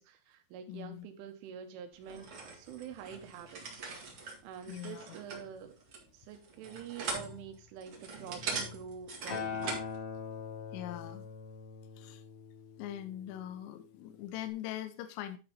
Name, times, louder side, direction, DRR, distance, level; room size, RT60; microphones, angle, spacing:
voice 1, 0.0-3.8 4.4-5.8 6.1-9.8, right 8 dB, 90° right, 3.6 m, -47 dB
voice 2, 0.7-1.1 4.7-5.2 10.7-11.3 12.0-12.2 12.8-15.4, left 12 dB, 80° left, 3.0 m, -42 dB
sound 1, 2.0-9.9, right 3 dB, 60° right, 1.5 m, -42 dB
Acoustic guitar, 9.3-13.6 14.4-14.5, left 6 dB, 55° left, 1.6 m, -42 dB
11.0 x 4.5 x 4.0 m
omnidirectional pair, 5.4 m